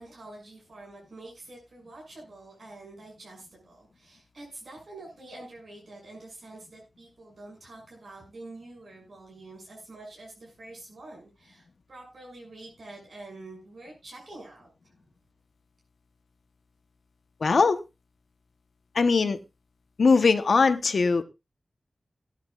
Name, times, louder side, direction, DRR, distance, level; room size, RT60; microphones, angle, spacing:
voice 1, 0.0-14.9, right 2 dB, 75° right, -2 dB, 6.8 m, -46 dB
voice 2, 17.4-17.8 18.9-19.4 20.0-21.2, left 4 dB, 85° left, 10 dB, 1.0 m, -21 dB
18.5 x 10.5 x 2.4 m, 0.25 s
wide cardioid pair, 70°, 0 cm